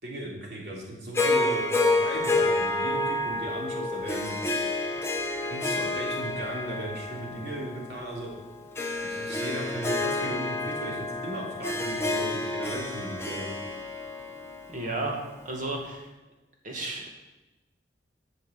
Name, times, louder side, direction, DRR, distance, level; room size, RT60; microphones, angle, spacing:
voice 1, 0.0-4.4 5.4-8.3 9.0-13.6, right 1 dB, 65° right, -3 dB, 3.2 m, -36 dB
Harp, 1.1-15.5, left 2 dB, 15° left, 1.1 m, -29 dB
voice 2, 14.7-16.1 16.6-17.1, right 2 dB, 45° right, 0 dB, 2.2 m, -33 dB
9.2 x 5.9 x 8.1 m, 1.1 s
head